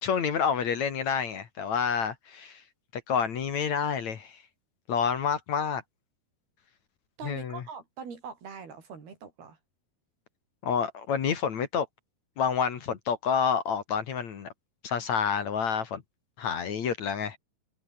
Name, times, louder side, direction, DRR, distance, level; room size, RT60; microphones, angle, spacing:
voice 1, 0.0-2.6 3.1-4.4 4.9-5.8 7.2-7.6 10.6-11.9 12.4-14.5 14.8-16.0 16.4-17.4, left 6 dB, 55° left, 2.9 m, -28 dB
voice 2, 7.2-9.6, right 6 dB, 80° right, 6.9 m, -43 dB
omnidirectional pair, 4.4 m